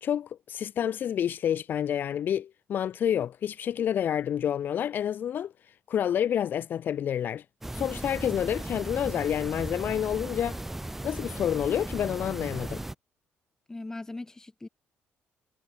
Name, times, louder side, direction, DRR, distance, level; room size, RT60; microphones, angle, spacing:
voice 1, 0.0-7.4 7.7-10.6 11.0-12.8, left 9 dB, 50° left, 0.7 m, -29 dB
sound 1, 7.6-12.9, right 1 dB, 5° right, 0.4 m, -37 dB
voice 2, 13.7-14.7, left 2 dB, 15° left, 3.0 m, -39 dB
cardioid pair, 135°, 4 cm